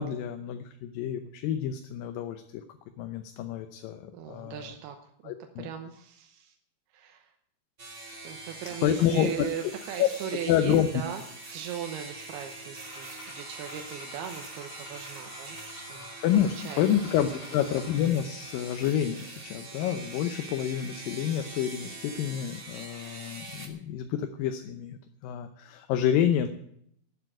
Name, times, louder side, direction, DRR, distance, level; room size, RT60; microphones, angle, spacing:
voice 1, 0.0-2.6 3.0-4.7 5.2-5.7 8.8-9.3 10.0-10.1 10.5-11.0 16.2-26.5, left 10 dB, 75° left, 7 dB, 2.3 m, -28 dB
voice 2, 4.1-6.6 6.9-7.3 8.2-11.2 11.5-16.1 16.5-16.8 17.3-17.6, right 9 dB, 90° right, 5 dB, 3.0 m, -39 dB
sound 1, 7.8-23.7, right 2 dB, 65° right, 0.5 m, -43 dB
sound 2, 12.8-17.9, left 2 dB, 30° left, 2.8 m, -48 dB
12.5 x 8.7 x 9.0 m, 0.71 s
omnidirectional pair, 4.4 m